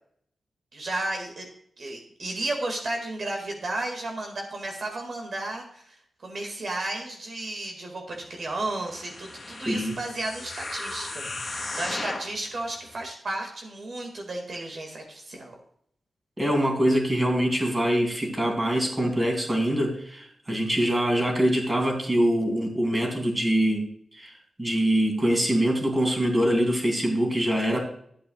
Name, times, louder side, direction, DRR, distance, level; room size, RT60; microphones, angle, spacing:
voice 1, 0.7-1.5 1.8-15.6, right 2 dB, 55° right, 2 dB, 2.0 m, -33 dB
demon self, 8.8-12.4 13.0-13.1, left 2 dB, 30° left, 2.3 m, -36 dB
voice 2, 16.4-23.9 24.1-27.8, equal, 20° right, 2 dB, 2.8 m, -24 dB
14.0 x 8.5 x 2.4 m, 0.65 s
wide cardioid pair, 115°, 0 cm